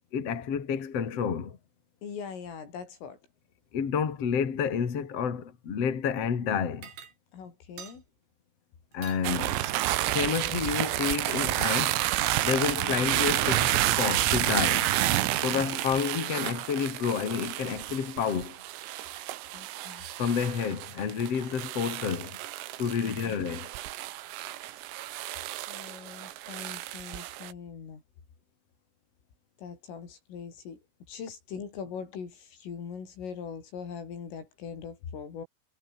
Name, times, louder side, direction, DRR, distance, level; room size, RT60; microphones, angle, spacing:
voice 1, 0.1-1.6 3.7-6.9 8.9-9.6 10.1-12.0 12.4-14.9 15.4-18.6 20.2-22.4 22.8-23.7, left 7 dB, 40° left, 2.9 m, -29 dB
voice 2, 2.0-3.2 7.3-8.0 12.8-13.0 15.5-15.6 19.5-20.1 23.0-23.4 25.7-28.0 29.6-30.8 31.1-35.5, left 6 dB, 70° left, 8.0 m, -41 dB
sound 1, 6.8-7.1 7.8-8.0 8.9-9.2 9.9-10.8 12.3-12.7 13.6-13.8 14.5-15.3, right 8 dB, 55° right, 5.1 m, -46 dB
sound 2, 9.2-27.5, right 15 dB, 85° right, 4.3 m, -30 dB
omnidirectional pair, 6.0 m